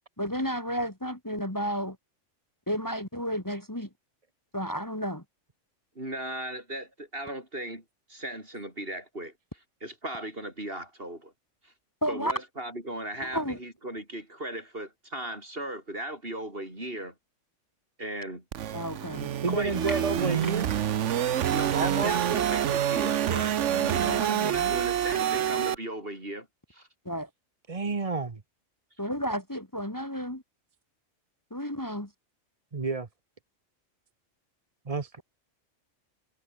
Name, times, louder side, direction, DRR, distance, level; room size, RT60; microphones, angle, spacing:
voice 1, 0.2-2.0 2.7-3.9 4.5-5.2 12.0-12.3 13.2-13.6 18.7-19.3 27.0-27.3 29.0-30.4 31.5-32.1, equal, 15° left, 2.7 m, -32 dB
voice 2, 6.0-7.8 8.1-9.3 9.8-11.3 11.6-11.7 12.1-17.1 18.0-18.4 19.5-20.4 21.5-23.5 23.9-26.9, right 1 dB, 50° right, 7.9 m, -37 dB
sound 1, 18.5-25.8, right 10 dB, 75° right, 1.2 m, -27 dB
voice 3, 19.4-20.7 21.7-22.2 23.6-24.9 27.7-28.4 32.7-33.1 34.9-35.2, right 4 dB, 30° right, 1.1 m, -31 dB
omnidirectional pair, 1.3 m